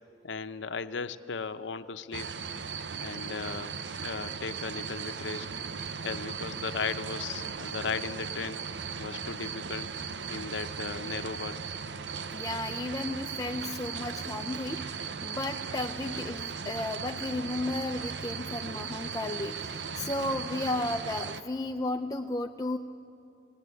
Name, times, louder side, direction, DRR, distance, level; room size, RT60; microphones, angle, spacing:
voice 1, 0.2-2.3 3.0-5.5 6.0-8.6 9.0-9.9 10.3-11.7, left 5 dB, 75° left, 10 dB, 0.7 m, -36 dB
sound 1, 2.1-21.4, right 6 dB, 70° right, 0.7 m, -37 dB
voice 2, 12.3-22.8, left 2 dB, 20° left, 5 dB, 0.5 m, -34 dB
19.5 x 18.5 x 9.6 m, 2.6 s
head